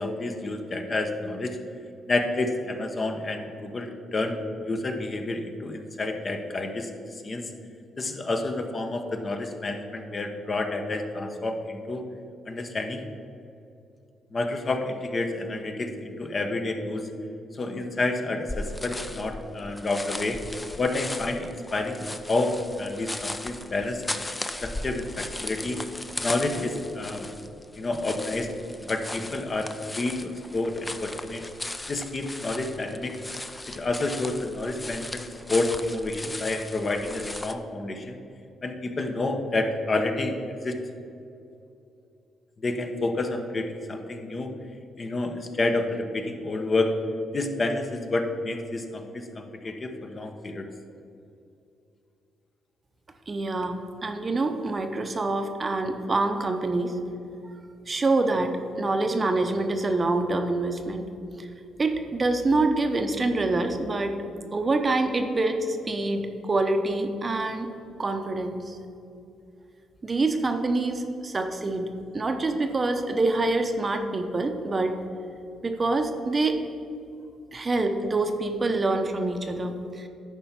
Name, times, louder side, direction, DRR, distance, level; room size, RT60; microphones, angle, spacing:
voice 1, 0.0-1.6 2.1-4.4 4.7-7.5 8.0-12.0 12.5-13.0 14.3-17.1 17.5-20.4 20.8-24.0 24.6-25.8 26.2-27.3 27.8-28.5 28.8-29.7 30.0-31.4 31.9-33.1 33.7-35.2 35.5-38.2 38.6-40.3 40.6-40.8 42.6-44.5 45.0-47.0 47.3-50.7, left 2 dB, 35° left, 5 dB, 0.9 m, -29 dB
sound 1, 18.5-37.5, left 2 dB, 15° left, 0.5 m, -37 dB
voice 2, 53.3-57.0 57.9-61.1 61.4-61.5 61.8-64.2 64.5-67.7 68.0-68.8 70.0-71.9 72.1-75.0 75.6-76.6 77.5-80.1, right 2 dB, 30° right, 6 dB, 0.7 m, -26 dB
10.5 x 4.4 x 5.8 m, 2.6 s
cardioid pair, 90°, 0 cm